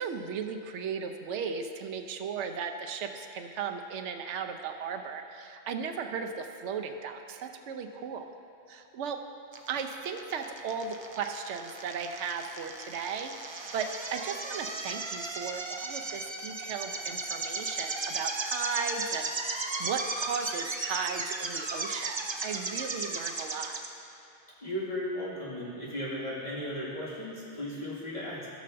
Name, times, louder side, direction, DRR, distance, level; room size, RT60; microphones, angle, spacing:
voice 1, 0.0-8.3 8.7-9.2 9.7-23.8, right 6 dB, 85° right, 6 dB, 0.9 m, -36 dB
sound 1, 9.5-23.9, right 3 dB, 40° right, 0.4 m, -36 dB
voice 2, 24.6-28.5, left 1 dB, 40° left, -9 dB, 2.3 m, -36 dB
15.5 x 6.6 x 2.6 m, 2.8 s
omnidirectional pair, 1.2 m